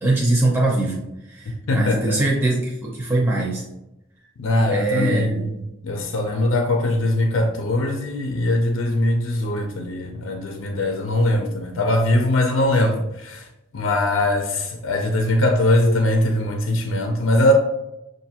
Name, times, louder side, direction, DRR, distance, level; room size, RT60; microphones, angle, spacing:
voice 1, 0.0-1.0 1.3-3.6 4.7-5.5, right 2 dB, 15° right, 0.6 m, -22 dB
voice 2, 1.7-2.2 4.4-5.5 5.8-13.4 13.7-17.5, left 1 dB, 85° left, 0.5 m, -21 dB
6.4 x 2.6 x 2.8 m
head